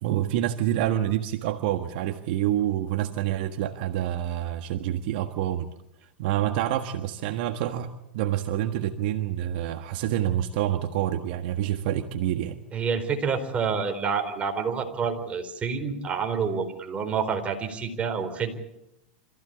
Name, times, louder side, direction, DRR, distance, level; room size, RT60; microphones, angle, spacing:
voice 1, 0.0-5.7 6.2-12.6, right 12 dB, 60° right, 7 dB, 1.5 m, -27 dB
voice 2, 12.7-18.5, right 6 dB, 20° right, 5 dB, 4.3 m, -28 dB
27.0 x 15.5 x 8.6 m, 0.87 s
hypercardioid pair, 115°, 6 cm